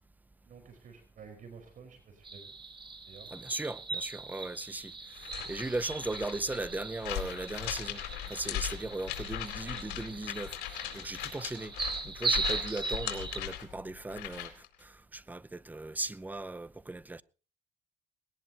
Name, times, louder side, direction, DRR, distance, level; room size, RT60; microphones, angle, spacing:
voice 1, 0.4-2.5 3.0-3.3 5.5-5.6, right 5 dB, 50° right, 4.8 m, -51 dB
sound 1, 2.2-13.4, right 4 dB, 30° right, 3.6 m, -39 dB
voice 2, 3.3-4.9 5.5-8.0 8.3-11.7 12.0-14.5 14.8-17.2, right 2 dB, 10° right, 0.7 m, -37 dB
sound 2, 5.1-14.7, left 12 dB, 90° left, 4.0 m, -39 dB
19.5 x 18.5 x 2.9 m
cardioid pair, 110°, 17 cm